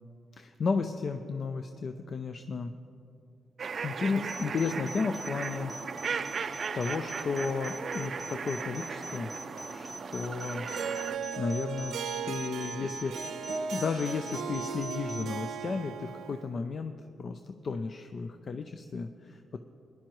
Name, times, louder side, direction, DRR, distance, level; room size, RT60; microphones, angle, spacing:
voice 1, 0.3-2.7 3.8-5.7 6.0-9.3 9.7-10.7 11.4-11.9 12.2-16.9 17.2-19.6, left 4 dB, 55° left, 7 dB, 0.5 m, -33 dB
sound 1, 3.6-11.2, right 5 dB, 55° right, 0.4 m, -37 dB
sound 2, 4.3-15.3, equal, ahead, 1.2 m, -44 dB
Harp, 10.7-16.5, right 6 dB, 90° right, 0.7 m, -37 dB
20.5 x 10.5 x 3.1 m, 2.5 s
cardioid pair, 80°, 0 cm